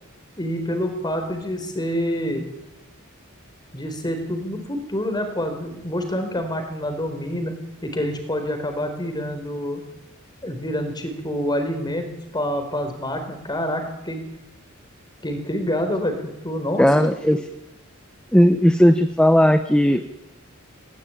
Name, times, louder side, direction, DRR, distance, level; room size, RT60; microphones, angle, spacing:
voice 1, 0.4-2.5 3.7-7.5 7.8-9.8 10.4-14.2 15.2-17.4, equal, 20° left, 6 dB, 4.4 m, -27 dB
voice 2, 16.8-17.4 18.3-20.0, equal, 5° left, 8 dB, 0.9 m, -16 dB
19.5 x 18.0 x 9.2 m, 0.92 s
head